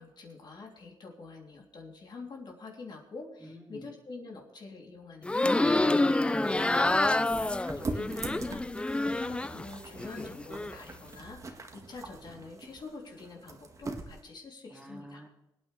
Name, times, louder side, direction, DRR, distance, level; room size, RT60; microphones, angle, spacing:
voice 1, 0.0-6.4 7.8-15.2, left 3 dB, 55° left, 0 dB, 3.3 m, -46 dB
voice 2, 3.4-3.9 6.3-7.4 14.7-15.3, right 1 dB, 10° right, 1 dB, 2.4 m, -44 dB
sound 1, 5.2-9.7 10.0-10.8, left 2 dB, 10° left, 0.4 m, -27 dB
sound 2, 6.4-14.2, right 3 dB, 35° right, 1.7 m, -42 dB
24.0 x 9.1 x 3.4 m, 0.92 s
cardioid pair, 95°, 9 cm